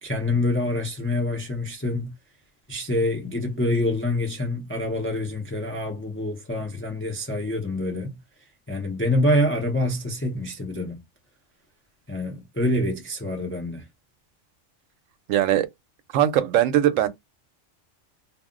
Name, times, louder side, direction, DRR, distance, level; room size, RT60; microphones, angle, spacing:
voice 1, 0.0-2.1 2.7-8.2 8.7-11.0 12.1-13.8, left 1 dB, 20° left, 0.3 m, -26 dB
voice 2, 15.3-15.7 16.1-17.1, right 11 dB, 80° right, 0.9 m, -20 dB
2.3 x 2.0 x 3.6 m
omnidirectional pair, 1.3 m